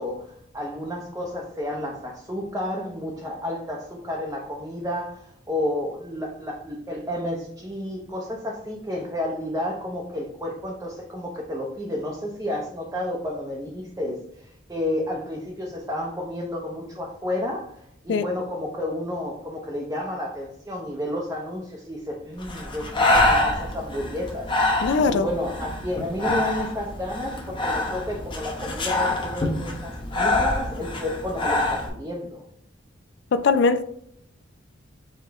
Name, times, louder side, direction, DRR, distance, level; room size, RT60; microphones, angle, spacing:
voice 1, 0.0-32.4, left 1 dB, 15° right, -2 dB, 0.6 m, -31 dB
Breathing, 22.4-31.9, left 2 dB, 25° left, 0.8 m, -25 dB
voice 2, 24.8-25.3 33.3-33.8, left 4 dB, 60° left, 11 dB, 0.3 m, -20 dB
4.8 x 3.0 x 3.5 m, 0.70 s
head